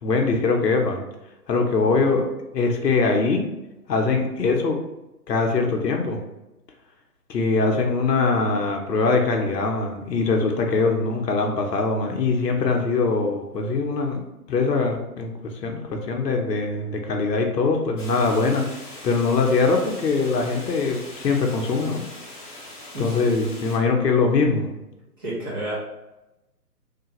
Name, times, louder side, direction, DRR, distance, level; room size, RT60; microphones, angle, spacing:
voice 1, 0.0-1.0 1.5-2.3 2.5-3.5 3.9-4.8 5.3-6.2 7.3-14.2 14.5-22.1 23.0-24.7, left 4 dB, 80° left, 2 dB, 0.7 m, -22 dB
sound 1, 18.0-23.8, left 1 dB, 30° left, 0.6 m, -41 dB
voice 2, 25.2-25.7, equal, 15° right, -9 dB, 0.6 m, -29 dB
3.2 x 2.2 x 2.9 m, 0.98 s
hypercardioid pair, 145°, 49 cm